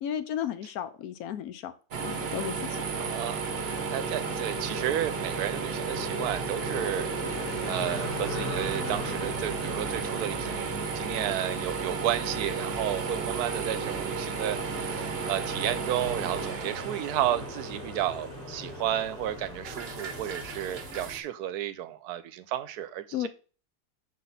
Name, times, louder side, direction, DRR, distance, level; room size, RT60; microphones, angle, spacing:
voice 1, 0.0-1.7 2.0-2.8 23.1-23.3, left 10 dB, 75° left, 12 dB, 1.1 m, -34 dB
sound 1, 1.9-21.2, right 5 dB, 45° right, 0.9 m, -34 dB
sound 2, 2.7-21.1, left 1 dB, 55° left, 2.6 m, -40 dB
voice 2, 3.0-7.1 7.6-23.3, right 11 dB, 75° right, 13 dB, 1.1 m, -32 dB
5.9 x 4.9 x 4.0 m, 0.37 s
omnidirectional pair, 1.7 m